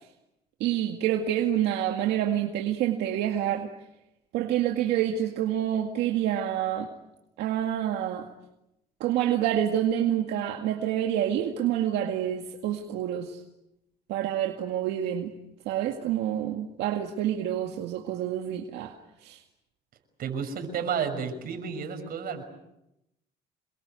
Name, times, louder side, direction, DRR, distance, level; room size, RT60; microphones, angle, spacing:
voice 1, 0.6-3.7 4.3-6.9 7.4-8.3 9.0-13.4 14.1-15.3 15.7-19.0 19.2-19.4, right 11 dB, 85° right, 3 dB, 2.1 m, -27 dB
voice 2, 20.2-22.4, right 6 dB, 60° right, 6 dB, 6.3 m, -31 dB
28.0 x 23.0 x 8.2 m, 0.88 s
cardioid pair, 110°, 17 cm